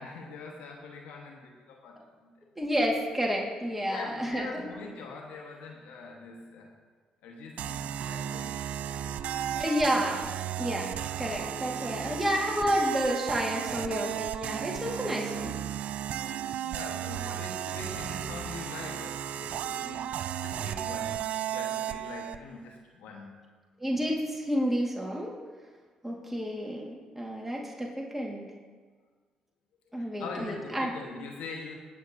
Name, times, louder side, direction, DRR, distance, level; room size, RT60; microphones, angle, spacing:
voice 1, 0.0-2.5 3.9-6.7 7.2-8.5 16.6-23.4 29.9-31.7, left 3 dB, 75° left, 0 dB, 1.3 m, -43 dB
voice 2, 2.6-4.6 9.5-10.3 10.6-10.9 11.2-15.5 17.3-17.4 23.8-25.3 26.0-28.5 29.9-30.9, equal, 10° right, -2 dB, 1.8 m, -30 dB
sound 1, 7.6-22.4, right 10 dB, 65° right, 0.4 m, -34 dB
18.5 x 7.6 x 2.7 m, 1.5 s
supercardioid pair, 55°, 2 cm